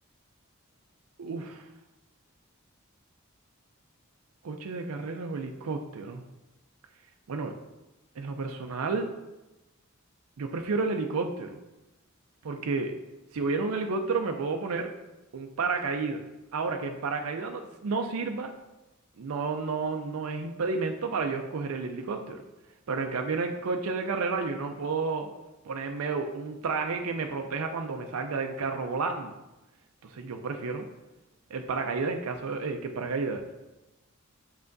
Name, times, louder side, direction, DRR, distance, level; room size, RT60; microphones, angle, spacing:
voice 1, 1.2-1.6 4.4-6.2 7.3-7.5 8.2-9.1 10.4-11.6 12.4-12.9 13.3-14.9 15.3-18.5 19.2-22.4 22.9-25.3 25.7-29.3 30.0-30.9 31.5-33.4, right 4 dB, 85° right, 4 dB, 0.5 m, -31 dB
6.5 x 5.7 x 2.6 m, 1.0 s
head